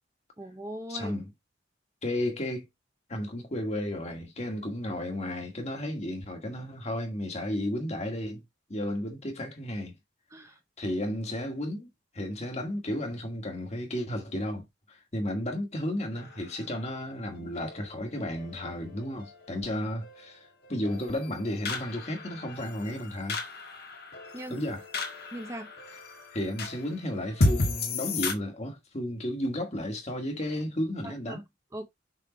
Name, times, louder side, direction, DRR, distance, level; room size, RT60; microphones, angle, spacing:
voice 1, 0.4-1.2 10.3-10.6 24.3-24.6 25.3-25.7 31.0-31.4 31.7-31.9, right 1 dB, 15° right, 0.8 m, -39 dB
voice 2, 0.9-1.3 2.0-2.7 3.1-8.4 8.7-10.0 10.8-23.4 24.5-24.8 26.3-31.4, left 1 dB, 35° left, 1.9 m, -33 dB
sound 1, 16.1-28.3, left 2 dB, 55° left, 1.6 m, -34 dB
6.5 x 3.8 x 3.9 m
head